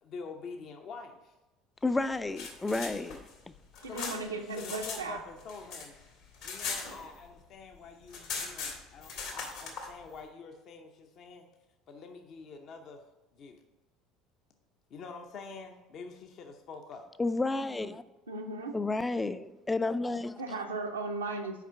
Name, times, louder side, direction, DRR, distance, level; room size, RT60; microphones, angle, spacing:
voice 1, 0.0-1.3 3.9-6.0 6.4-11.5 11.9-13.0 13.3-13.6 14.9-17.1, left 4 dB, 50° left, 4 dB, 0.7 m, -46 dB
voice 2, 1.8-3.2 17.2-18.0 18.7-20.4, left 2 dB, 15° left, 13 dB, 0.4 m, -31 dB
sound 1, 2.1-5.0 5.3-7.5 7.7-7.8 8.1-9.9, left 4 dB, 65° left, 1.7 m, -39 dB
voice 3, 3.8-5.2 18.3-18.8 20.4-21.6, right 3 dB, 85° right, 3 dB, 0.7 m, -36 dB
5.8 x 4.9 x 5.6 m, 1.1 s
figure-of-eight pair, 65°, 0 cm